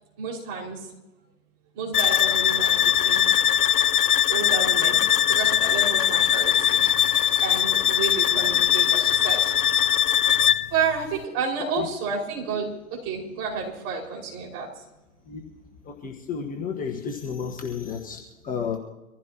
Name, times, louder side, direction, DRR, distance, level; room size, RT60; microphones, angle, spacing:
voice 1, 0.2-0.8 1.7-3.3 4.3-5.0 5.3-6.8 7.4-9.5 10.7-14.7, right 5 dB, 35° right, -1 dB, 5.7 m, -30 dB
sound 1, 1.9-10.7, left 10 dB, 85° left, 0.6 m, -21 dB
voice 2, 15.8-18.8, left 6 dB, 20° left, 2 dB, 1.4 m, -32 dB
24.5 x 15.5 x 3.0 m, 1.0 s
hypercardioid pair, 120°, 44 cm